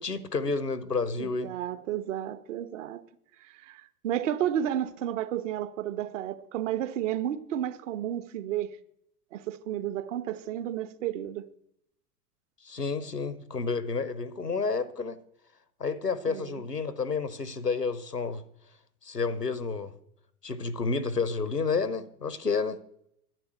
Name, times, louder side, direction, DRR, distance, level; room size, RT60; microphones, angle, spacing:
voice 1, 0.0-1.5 12.6-15.2 15.8-18.4 19.0-19.9 20.4-22.8, left 4 dB, 90° left, 1.1 m, -30 dB
voice 2, 1.2-3.0 3.4-8.7 9.3-11.5 16.3-16.6, right 11 dB, 50° right, 1.2 m, -32 dB
10.5 x 9.6 x 7.9 m
figure-of-eight pair, 90°, 46 cm